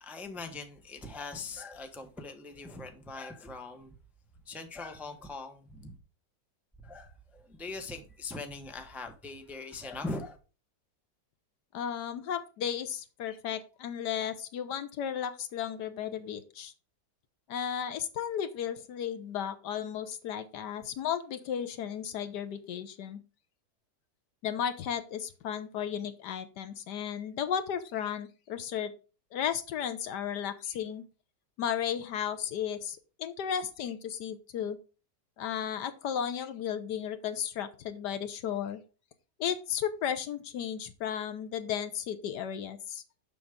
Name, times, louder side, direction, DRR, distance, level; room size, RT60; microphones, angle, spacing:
voice 1, 0.0-4.0 4.5-6.0 6.8-10.4, left 3 dB, ahead, 0.7 m, -41 dB
voice 2, 11.7-16.7 17.5-23.2 24.4-28.9 29.3-31.0 31.6-34.8 35.4-38.8 39.4-43.0, left 9 dB, 75° left, 1.4 m, -34 dB
7.1 x 6.4 x 3.6 m
omnidirectional pair, 1.9 m